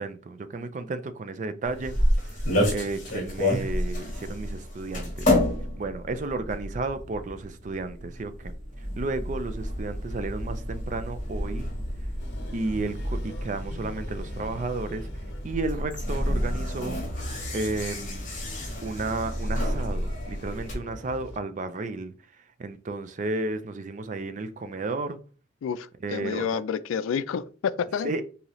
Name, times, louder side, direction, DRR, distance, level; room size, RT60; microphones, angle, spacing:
voice 1, 0.0-5.3 5.8-11.7 12.5-17.0 17.5-18.3 18.8-25.2 26.0-26.6 28.0-28.2, right 3 dB, 40° right, 0.3 m, -33 dB
sound 1, 1.6-20.7, left 1 dB, 40° left, 1.4 m, -30 dB
sound 2, 12.2-21.4, left 1 dB, 55° left, 0.8 m, -43 dB
voice 2, 25.6-28.1, left 7 dB, 85° left, 0.3 m, -29 dB
4.0 x 2.7 x 3.0 m
head